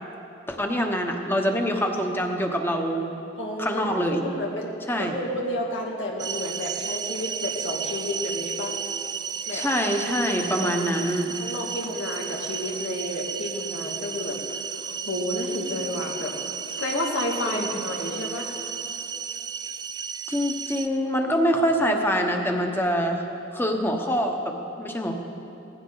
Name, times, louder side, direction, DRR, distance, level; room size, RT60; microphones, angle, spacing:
voice 1, 0.5-3.1 3.6-4.2 4.9-5.1 9.5-11.4 17.5-17.6 20.3-23.2 23.5-25.1, equal, 10° left, 3 dB, 1.1 m, -25 dB
voice 2, 3.4-8.8 9.5-9.7 10.6-10.7 11.4-16.3 16.8-18.5, left 1 dB, 90° left, -2 dB, 2.2 m, -31 dB
sound 1, 6.2-20.9, right 7 dB, 20° right, 0.3 m, -33 dB
19.0 x 15.0 x 4.0 m, 2.8 s
head